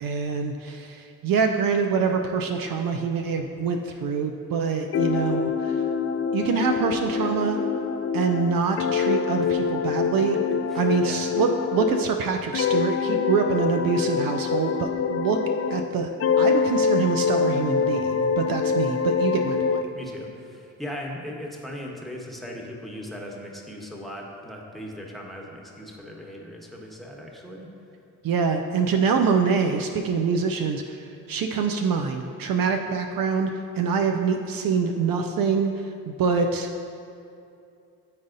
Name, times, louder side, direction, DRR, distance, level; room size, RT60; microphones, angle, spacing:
voice 1, 0.0-5.8 6.3-7.6 8.1-10.4 10.7-15.4 15.7-16.1 16.4-19.8 28.2-31.0 31.3-35.7 36.1-36.8, right 5 dB, 60° right, 4 dB, 0.5 m, -25 dB
sound 1, 4.9-12.1 12.5-15.9 16.2-19.9, left 6 dB, 40° left, 0.4 m, -25 dB
voice 2, 10.7-11.3 19.9-27.7, left 1 dB, ahead, -1 dB, 1.1 m, -38 dB
9.9 x 4.0 x 2.6 m, 2.6 s
supercardioid pair, 50°, 38 cm